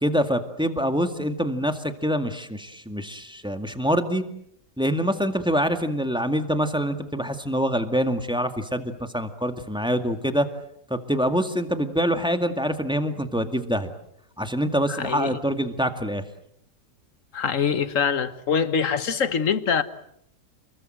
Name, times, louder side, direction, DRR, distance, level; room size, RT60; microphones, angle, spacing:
voice 1, 0.0-4.2 4.8-10.5 10.9-13.9 14.4-16.2, equal, 5° right, 7 dB, 1.9 m, -25 dB
voice 2, 14.9-15.3 17.3-19.8, left 6 dB, 50° left, 12 dB, 1.6 m, -24 dB
29.0 x 22.0 x 7.8 m, 0.72 s
omnidirectional pair, 1.8 m